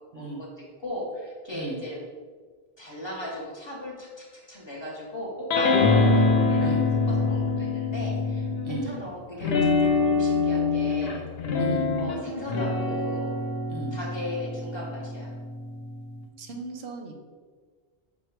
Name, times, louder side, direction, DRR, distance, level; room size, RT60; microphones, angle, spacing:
voice 1, 0.1-0.5 0.8-2.0 2.8-11.2 12.0-13.4 13.9-15.4, left 1 dB, 30° left, -3 dB, 0.7 m, -37 dB
sound 1, 5.5-8.9 9.4-16.2, left 3 dB, 75° left, 0.8 m, -25 dB
voice 2, 6.6-6.9 8.6-9.0 11.6-11.9 13.7-14.0 16.4-17.1, right 3 dB, 85° right, 4 dB, 0.9 m, -36 dB
5.3 x 2.0 x 4.5 m, 1.5 s
omnidirectional pair, 1.1 m